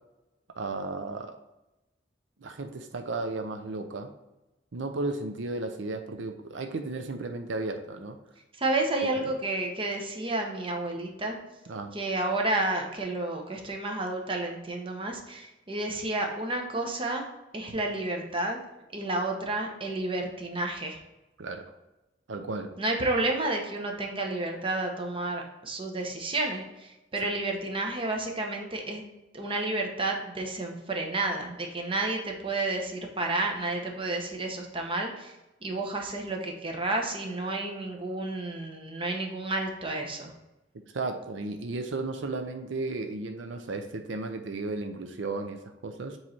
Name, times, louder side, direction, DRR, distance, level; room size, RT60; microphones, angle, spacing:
voice 1, 0.6-1.4 2.4-4.1 4.7-8.2 9.2-9.3 11.7-11.9 21.4-21.7 22.3-22.7 40.9-46.2, right 3 dB, 85° right, 6 dB, 0.6 m, -34 dB
voice 2, 8.6-11.4 11.9-17.3 17.5-18.6 18.9-21.0 22.8-29.1 29.3-35.3 35.6-40.3, right 2 dB, 30° right, 2 dB, 0.9 m, -31 dB
7.3 x 3.2 x 4.2 m, 0.99 s
head